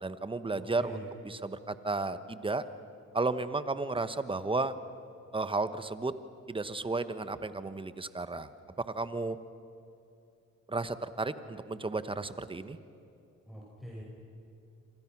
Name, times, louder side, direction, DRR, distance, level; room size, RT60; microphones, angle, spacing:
voice 1, 0.0-2.6 3.1-4.8 5.3-6.1 6.5-8.5 8.9-9.4 10.7-12.8, right 3 dB, 15° right, 12 dB, 1.1 m, -33 dB
voice 2, 0.6-1.1 13.5-14.0, equal, ahead, -4 dB, 5.2 m, -44 dB
28.5 x 25.5 x 6.1 m, 2.6 s
cardioid pair, 90°, 30 cm